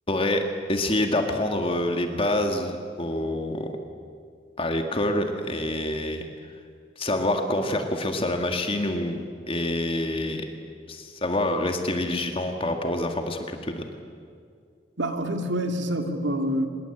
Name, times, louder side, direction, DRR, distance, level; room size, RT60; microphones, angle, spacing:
voice 1, 0.1-3.7 4.6-6.2 7.0-9.2 9.5-10.4 10.9-13.9, left 1 dB, 30° left, 5 dB, 1.9 m, -26 dB
voice 2, 15.0-16.7, right 1 dB, 75° right, 6 dB, 2.5 m, -26 dB
25.0 x 22.0 x 8.9 m, 2.2 s
head